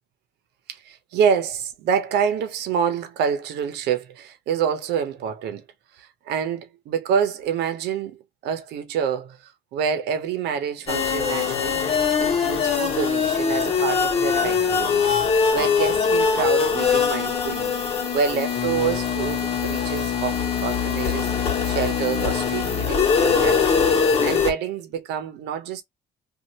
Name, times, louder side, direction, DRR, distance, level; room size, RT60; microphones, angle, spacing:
voice 1, 0.7-5.6 5.9-15.1 15.5-17.7 18.1-21.3 21.7-23.8 24.2-25.8, right 7 dB, 80° right, 0.8 m, -27 dB
sound 1, 10.9-24.5, left 6 dB, 35° left, 1.3 m, -22 dB
2.8 x 2.5 x 3.0 m
cardioid pair, 110°, 17 cm